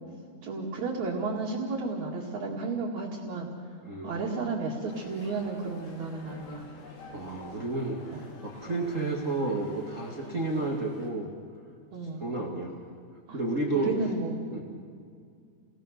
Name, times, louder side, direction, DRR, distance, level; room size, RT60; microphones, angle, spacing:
voice 1, 0.4-3.5 4.0-6.7 8.1-8.3 10.2-10.3 11.9-12.2 13.3-13.4 13.7-14.4, right 3 dB, 45° right, -4 dB, 3.0 m, -33 dB
sound 1, 4.9-11.1, left 2 dB, 75° left, 5.5 m, -49 dB
voice 2, 7.1-8.0 8.4-11.3 12.2-12.8 13.3-13.9 14.5-14.6, right 2 dB, 75° right, 0 dB, 0.7 m, -31 dB
29.5 x 20.5 x 6.7 m, 2.2 s
omnidirectional pair, 5.3 m